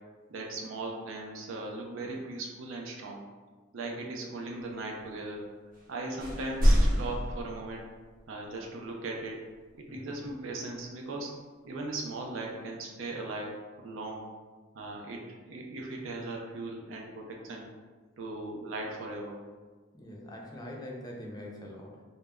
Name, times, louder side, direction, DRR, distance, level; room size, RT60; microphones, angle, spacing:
voice 1, 0.3-3.2 3.7-5.4 5.9-7.8 8.3-9.4 9.7-11.3 11.6-14.2 14.7-17.7 18.2-19.4, right 2 dB, 85° right, 0 dB, 0.5 m, -38 dB
sound 1, 5.7-5.9 6.2-8.2, equal, 45° right, 0.6 m, -26 dB
voice 2, 19.9-22.0, left 1 dB, 20° left, -1 dB, 0.4 m, -43 dB
2.1 x 2.0 x 3.4 m, 1.4 s
head